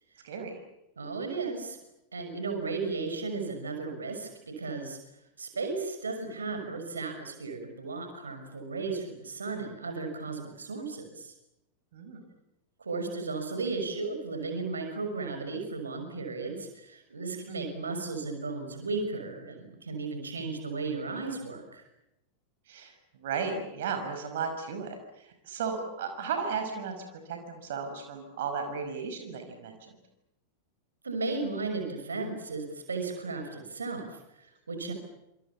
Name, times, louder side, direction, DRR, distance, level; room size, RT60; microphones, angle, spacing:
voice 1, 0.2-0.6 11.9-12.2 17.5-17.7 22.7-29.9, right 5 dB, 55° right, 5 dB, 5.6 m, -35 dB
voice 2, 1.0-1.8 2.1-4.3 4.6-5.0 5.4-11.3 12.8-21.9 31.0-34.9, right 3 dB, 75° right, 5 dB, 5.8 m, -35 dB
28.5 x 26.5 x 7.2 m, 0.88 s
figure-of-eight pair, 90°, 0 cm